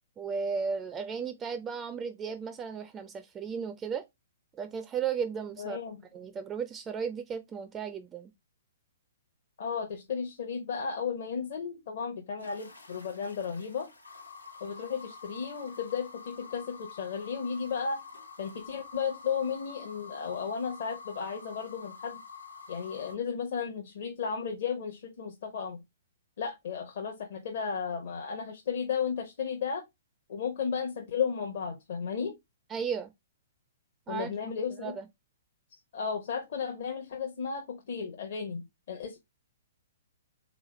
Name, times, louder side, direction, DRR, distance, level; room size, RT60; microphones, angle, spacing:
voice 1, 0.2-4.0 4.5-5.8 6.1-8.3 32.7-33.1 34.1-34.5 34.8-35.1, right 6 dB, 15° right, 0.3 m, -35 dB
voice 2, 5.6-6.0 9.6-13.9 14.6-18.0 18.4-22.2 22.7-25.8 26.4-29.8 30.3-32.4 34.1-35.0 35.9-39.2, left 6 dB, 50° left, 0.7 m, -34 dB
sound 1, 12.4-23.2, left 4 dB, 80° left, 0.8 m, -48 dB
3.4 x 3.1 x 3.0 m
figure-of-eight pair, 115°, 0 cm